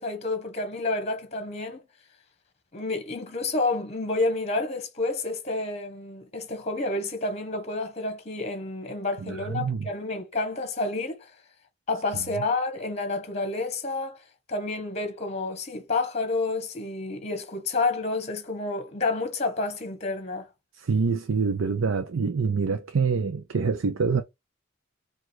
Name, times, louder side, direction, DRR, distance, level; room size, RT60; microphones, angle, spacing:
voice 1, 0.0-1.8 2.7-11.3 11.9-14.2 14.5-20.5, left 3 dB, 35° left, 1.2 m, -29 dB
voice 2, 9.2-9.9 12.1-12.4 20.8-24.2, right 5 dB, 85° right, 0.5 m, -26 dB
4.7 x 2.5 x 4.0 m
head